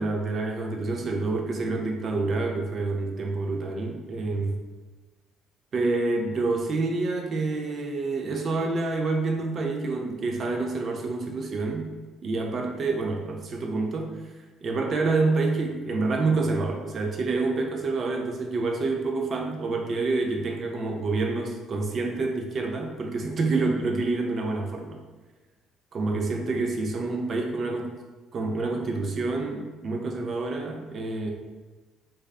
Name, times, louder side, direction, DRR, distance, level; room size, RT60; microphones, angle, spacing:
voice 1, 0.0-4.6 5.7-11.9 12.2-14.2 14.6-25.0 25.9-27.9 28.3-31.3, right 3 dB, 45° right, 1 dB, 0.3 m, -27 dB
2.3 x 2.3 x 2.2 m, 1.3 s
hypercardioid pair, 50°, 0 cm